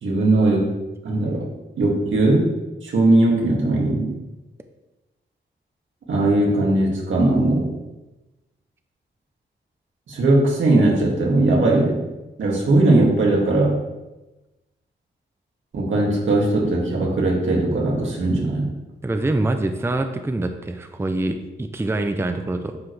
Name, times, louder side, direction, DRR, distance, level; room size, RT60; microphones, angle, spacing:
voice 1, 0.0-0.7 1.0-1.5 1.8-2.4 2.8-4.1 6.1-7.7 10.1-12.0 12.4-13.8 15.7-18.7, right 2 dB, 85° right, -3 dB, 2.0 m, -19 dB
voice 2, 19.0-22.8, right 2 dB, 10° right, 6 dB, 0.5 m, -25 dB
9.3 x 4.9 x 3.2 m, 1.1 s
wide cardioid pair, 115°, 20 cm